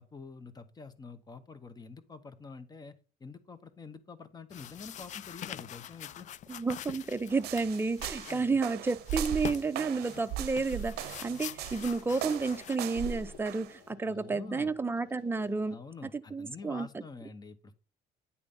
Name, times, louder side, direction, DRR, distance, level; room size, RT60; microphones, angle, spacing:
voice 1, 0.0-6.3 8.3-8.6 14.0-14.7 15.7-17.7, left 4 dB, 25° left, 1.0 m, -47 dB
sound 1, 4.5-12.8, left 11 dB, 45° left, 0.4 m, -45 dB
voice 2, 6.5-15.8 16.3-16.9, right 4 dB, 15° right, 0.6 m, -31 dB
sound 2, 7.3-13.7, right 11 dB, 75° right, 0.6 m, -39 dB
sound 3, 9.5-15.8, left 8 dB, 70° left, 1.4 m, -56 dB
9.8 x 3.3 x 5.6 m
cardioid pair, 110°, 17 cm